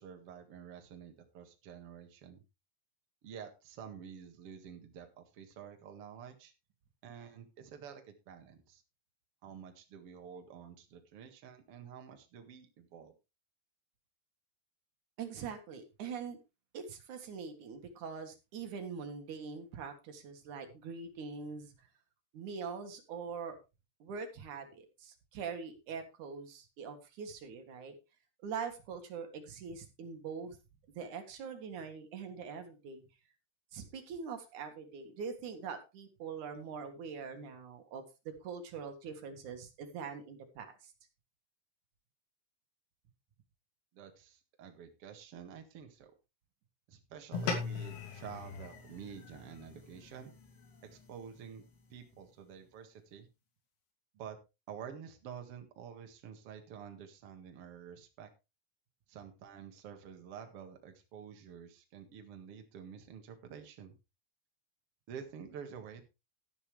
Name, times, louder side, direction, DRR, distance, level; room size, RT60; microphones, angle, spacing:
voice 1, 0.0-2.4 3.2-6.5 7.0-8.8 9.4-13.1 43.9-46.1 46.9-50.3 50.8-51.6 51.9-53.3 54.1-54.4 54.7-58.3 59.1-63.9 65.1-66.1, right 7 dB, 90° right, 5 dB, 1.2 m, -49 dB
voice 2, 15.2-16.4 16.7-21.9 22.3-23.6 24.0-27.9 28.4-30.6 31.0-33.0 33.7-38.0 38.4-40.9, right 6 dB, 60° right, 6 dB, 2.3 m, -43 dB
sound 1, 47.3-52.0, left 5 dB, 90° left, 5.2 m, -41 dB
12.5 x 11.0 x 3.3 m, 0.26 s
omnidirectional pair, 5.6 m